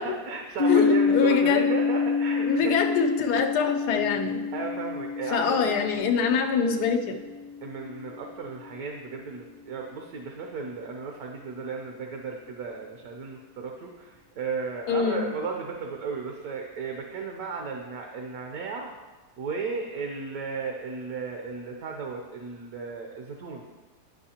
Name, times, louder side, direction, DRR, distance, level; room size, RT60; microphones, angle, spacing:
voice 1, 0.0-3.0 4.5-5.7 7.6-18.9 19.4-23.7, right 5 dB, 70° right, 2 dB, 1.2 m, -34 dB
sound 1, 0.6-8.4, left 5 dB, 65° left, 1.1 m, -27 dB
voice 2, 0.7-1.7 2.4-4.4 5.3-7.2 14.9-15.3, left 6 dB, 90° left, 3 dB, 1.2 m, -24 dB
10.5 x 5.4 x 2.8 m, 1.3 s
omnidirectional pair, 1.7 m